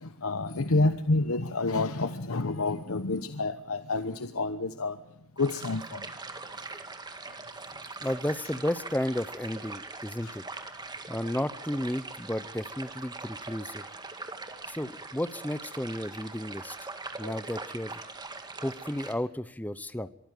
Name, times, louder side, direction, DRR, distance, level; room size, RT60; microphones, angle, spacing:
voice 1, 0.0-5.0 5.4-6.1 10.2-10.4 17.2-17.4 20.0-20.1, left 3 dB, 80° left, 11 dB, 1.0 m, -29 dB
sound 1, 5.4-19.1, right 3 dB, 20° right, 1.9 m, -42 dB
voice 2, 8.0-10.4 11.1-13.8 14.7-16.8 17.2-18.0 18.6-20.1, left 1 dB, 10° left, 15 dB, 0.8 m, -33 dB
24.0 x 14.5 x 9.2 m, 0.73 s
head